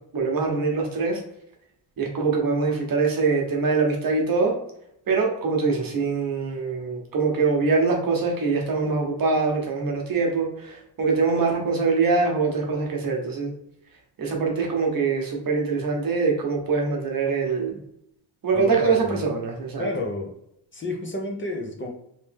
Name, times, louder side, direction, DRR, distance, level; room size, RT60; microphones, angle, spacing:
voice 1, 0.1-1.2 2.0-4.5 5.1-13.5 14.2-17.7 18.4-19.9, right 4 dB, 55° right, 0 dB, 1.0 m, -23 dB
voice 2, 18.5-19.2 19.8-20.3 20.7-21.9, left 2 dB, 30° left, 0 dB, 0.8 m, -30 dB
3.2 x 2.9 x 3.4 m, 0.78 s
cardioid pair, 120°, 42 cm